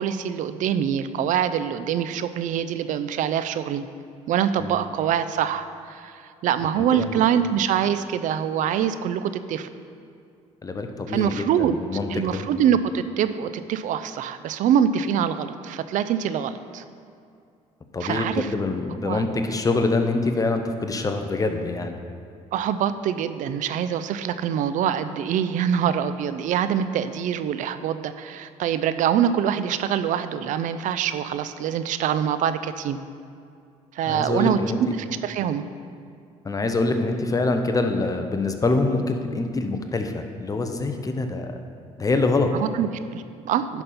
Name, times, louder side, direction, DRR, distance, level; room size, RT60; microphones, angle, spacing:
voice 1, 0.0-3.8 4.3-9.7 11.1-11.8 12.1-16.8 18.0-18.5 19.0-19.2 22.5-33.0 33.9-34.6 34.9-35.6 42.5-43.8, right 9 dB, 65° right, 12 dB, 0.5 m, -24 dB
voice 2, 6.8-7.2 10.6-12.4 17.9-22.0 34.1-34.8 36.4-41.5 42.0-42.5, left 3 dB, 25° left, 6 dB, 0.8 m, -25 dB
10.5 x 4.2 x 5.6 m, 2.4 s
supercardioid pair, 80°, 14 cm